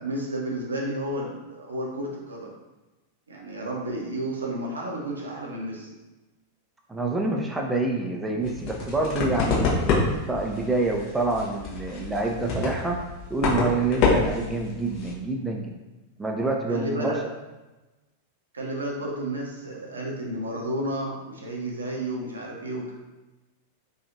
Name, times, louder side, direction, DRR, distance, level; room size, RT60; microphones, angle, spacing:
voice 1, 0.0-2.5 3.3-5.9 16.7-17.2 18.5-22.9, right 1 dB, 75° right, -2 dB, 0.6 m, -31 dB
voice 2, 6.9-13.0 13.3-15.7 16.2-17.1, right 2 dB, 10° right, 1 dB, 0.3 m, -27 dB
sound 1, 8.4-15.1, left 4 dB, 40° left, 0.8 m, -27 dB
2.9 x 2.3 x 2.6 m, 1.1 s
figure-of-eight pair, 90°, 0 cm